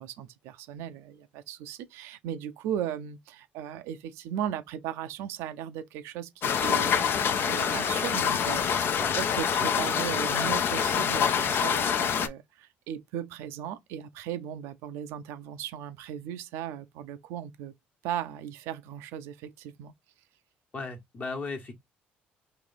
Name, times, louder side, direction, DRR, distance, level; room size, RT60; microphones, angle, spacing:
voice 1, 0.0-17.7 18.0-19.9, right 10 dB, 85° right, 0.5 m, -37 dB
sound 1, 6.4-12.3, left 7 dB, 55° left, 0.5 m, -26 dB
voice 2, 20.7-21.7, left 3 dB, 35° left, 1.2 m, -36 dB
3.1 x 2.6 x 4.0 m
supercardioid pair, 75°, 4 cm